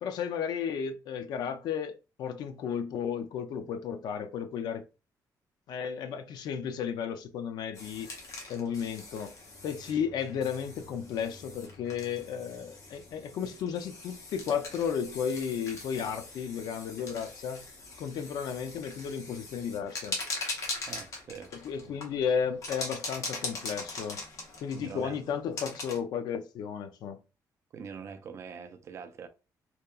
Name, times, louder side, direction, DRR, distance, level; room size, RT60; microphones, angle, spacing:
voice 1, 0.0-4.8 5.7-8.1 8.5-9.3 9.6-17.6 18.0-20.2 21.6-24.2 24.6-27.2, left 7 dB, 75° left, 0.4 m, -33 dB
sound 1, 7.7-26.0, left 3 dB, 50° left, 0.8 m, -42 dB
Bowed string instrument, 9.1-14.1, left 3 dB, 5° right, 0.8 m, -56 dB
voice 2, 20.9-21.5 21.9-22.0 24.7-25.2 27.7-29.3, right 6 dB, 40° right, 0.3 m, -43 dB
2.9 x 2.2 x 2.3 m
cardioid pair, 165°, 7 cm